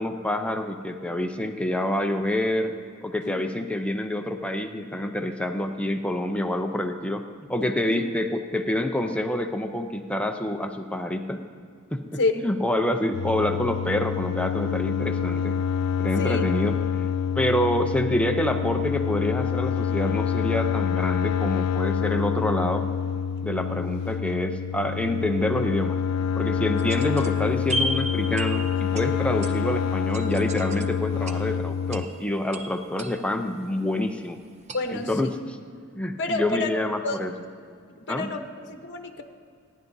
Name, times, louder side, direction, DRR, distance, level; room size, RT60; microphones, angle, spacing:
voice 1, 0.0-2.7 3.0-7.2 7.5-11.4 11.9-15.5 16.0-16.8 17.4-22.9 23.4-26.0 26.4-34.4 34.9-35.6 35.9-37.3 38.1-38.3, left 1 dB, 5° left, 5 dB, 0.5 m, -27 dB
sound 1, 13.1-32.1, left 7 dB, 90° left, 0.4 m, -27 dB
sound 2, 26.8-34.0 34.7-35.4, right 1 dB, 30° right, 0.7 m, -36 dB
voice 2, 34.7-35.3 36.2-36.7 37.0-37.2 38.1-39.2, left 2 dB, 55° left, 5 dB, 0.9 m, -29 dB
30.0 x 11.0 x 2.7 m, 2.2 s
head